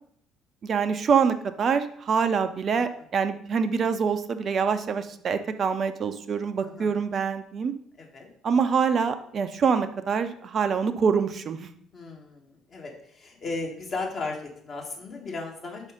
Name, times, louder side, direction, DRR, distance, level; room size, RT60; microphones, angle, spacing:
voice 1, 0.6-7.7 8.4-11.7, right 6 dB, 40° right, 10 dB, 0.5 m, -25 dB
voice 2, 6.6-6.9 8.0-8.3 11.9-15.8, left 3 dB, 40° left, 0 dB, 1.8 m, -36 dB
5.4 x 4.9 x 5.1 m, 0.65 s
figure-of-eight pair, 50°, 0 cm